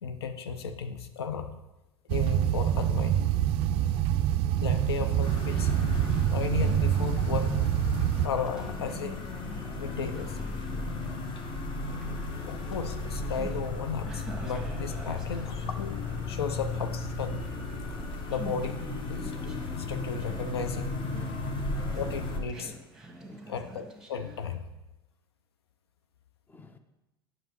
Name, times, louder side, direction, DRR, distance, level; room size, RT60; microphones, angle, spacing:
voice 1, 0.0-1.6 2.1-3.3 4.6-5.7 6.3-7.7 8.2-9.2 9.8-10.4 12.5-17.5 18.3-20.9 21.9-22.7 23.5-24.7, left 6 dB, 80° left, 0.5 m, -35 dB
sound 1, 2.1-8.3, right 11 dB, 45° right, 0.4 m, -26 dB
Conversation, 4.9-24.6, right 2 dB, 5° right, 1.4 m, -47 dB
sound 2, 5.2-22.4, left 3 dB, 40° left, 1.0 m, -35 dB
voice 2, 21.1-21.5 23.3-23.5 26.5-26.8, left 3 dB, 15° left, 0.6 m, -56 dB
9.0 x 6.0 x 3.1 m
hypercardioid pair, 80°, 13 cm